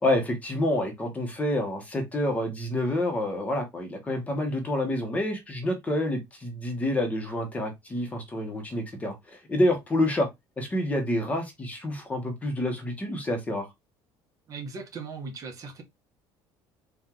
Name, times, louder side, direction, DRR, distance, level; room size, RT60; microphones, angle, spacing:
voice 1, 0.0-10.3 10.6-13.7, left 1 dB, 15° left, 1.2 m, -28 dB
voice 2, 14.5-15.8, right 4 dB, 35° right, 1.2 m, -38 dB
4.5 x 2.7 x 3.6 m
cardioid pair, 160°, 9 cm